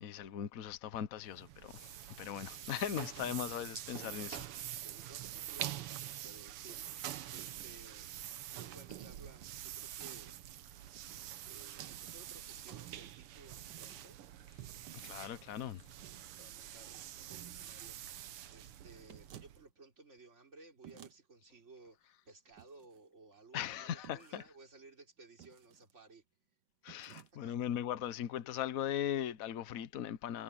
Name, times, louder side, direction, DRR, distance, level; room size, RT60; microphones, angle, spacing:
voice 1, 0.0-1.9 2.2-4.4 15.0-15.8 23.5-24.4 26.8-30.4, left 10 dB, 50° left, 1.1 m, -39 dB
sound 1, 1.2-19.7, right 12 dB, 85° right, 1.9 m, -46 dB
voice 2, 4.8-8.1 8.5-10.4 11.4-14.2 15.2-15.7 16.4-26.2 27.0-27.5, right 3 dB, 30° right, 4.5 m, -58 dB
sound 2, 11.0-11.3 12.1-12.5 13.7-14.1 14.9-15.3 19.1-19.5 20.8-21.2 22.6-23.0 24.0-24.4 25.4-25.9 26.9-27.3, right 10 dB, 60° right, 1.4 m, -56 dB
omnidirectional pair, 2.4 m